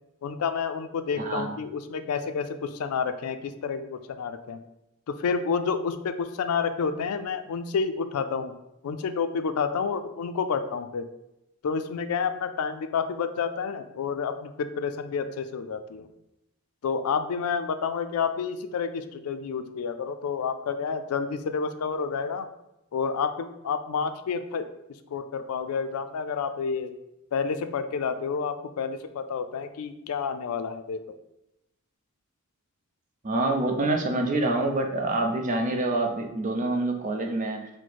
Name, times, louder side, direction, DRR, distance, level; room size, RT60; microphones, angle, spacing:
voice 1, 0.2-4.6 5.1-8.5 8.8-11.1 11.6-16.1 16.8-22.5 22.9-24.7 25.1-26.9 27.3-31.2, left 5 dB, 85° left, 9 dB, 0.4 m, -29 dB
voice 2, 1.2-1.5 33.2-37.7, right 2 dB, 35° right, 3 dB, 0.5 m, -26 dB
4.6 x 2.1 x 4.1 m, 0.88 s
head